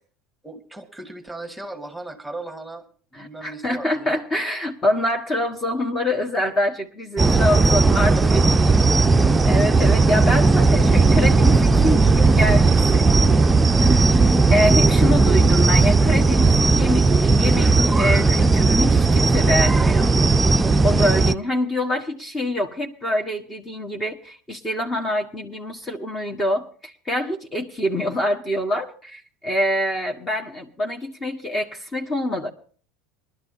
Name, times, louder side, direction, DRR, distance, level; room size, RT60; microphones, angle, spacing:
voice 1, 0.4-2.9 3.1-4.2 7.4-8.8 11.8-12.9, right 2 dB, ahead, 6 dB, 1.8 m, -38 dB
voice 2, 3.1-8.5 9.4-13.0 14.5-20.1 20.8-32.5, left 1 dB, 25° left, 4 dB, 1.7 m, -25 dB
sound 1, 7.2-21.3, right 3 dB, 20° right, 0.5 m, -16 dB
22.0 x 12.0 x 2.7 m, 0.43 s
hypercardioid pair, 75°, 0 cm